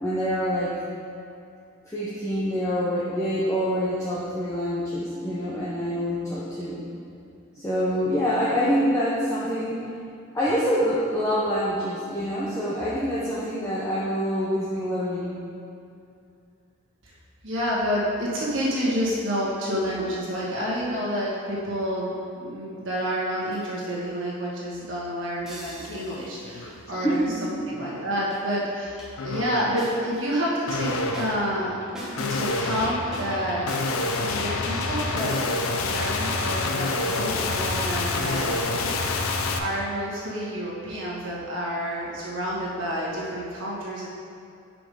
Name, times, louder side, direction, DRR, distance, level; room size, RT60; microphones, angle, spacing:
voice 1, 0.0-0.8 1.9-6.8 7.5-9.9 10.3-15.4 27.0-27.6, equal, 15° left, -9 dB, 0.7 m, -26 dB
voice 2, 17.4-31.7 32.2-33.6 34.2-35.4 35.8-44.1, equal, 55° right, -6 dB, 1.7 m, -29 dB
sound 1, 23.5-23.8 25.5-26.7 28.3-28.4 29.0-29.1 29.8-30.3 31.1-31.5 31.9-32.3 32.7-32.8 33.1-33.3 33.7-33.8 34.1-34.2 34.6-36.5 36.9-38.6, equal, 5° right, 1.0 m, -42 dB
sound 2, 25.8-26.0 26.4-27.2 27.7-28.1 29.2-29.8 30.7-39.6, left 3 dB, 75° left, 0.5 m, -28 dB
6.0 x 5.2 x 5.0 m, 2.6 s
head